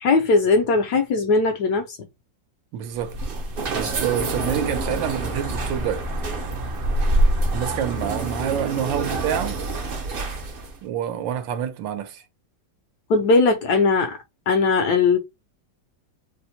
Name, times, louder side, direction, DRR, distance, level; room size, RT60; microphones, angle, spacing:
voice 1, 0.0-2.0 13.1-14.2 14.5-15.2, left 4 dB, 70° left, 1.0 m, -19 dB
voice 2, 2.7-3.4 3.7-6.1 7.5-9.6 10.8-12.2, right 9 dB, 80° right, 1.3 m, -27 dB
sound 1, 2.9-10.8, right 2 dB, 60° right, 0.6 m, -26 dB
4.2 x 2.1 x 2.8 m
omnidirectional pair, 2.0 m